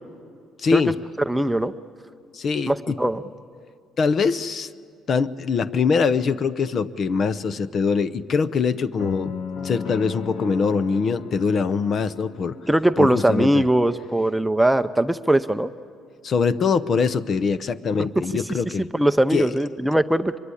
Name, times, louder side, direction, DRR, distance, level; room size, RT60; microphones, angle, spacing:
voice 1, 0.6-0.9 2.3-3.0 4.0-4.7 5.1-9.3 9.6-12.6 13.0-13.6 16.2-18.9 19.3-19.5, left 5 dB, 45° left, 15 dB, 0.7 m, -23 dB
voice 2, 1.3-1.7 2.7-3.2 12.7-15.7 18.0-18.2 18.6-20.4, right 1 dB, 5° right, 10 dB, 0.6 m, -21 dB
sound 1, 9.0-13.1, left 6 dB, 85° left, 2.2 m, -35 dB
25.0 x 23.0 x 9.9 m, 2.3 s
cardioid pair, 120°, 0 cm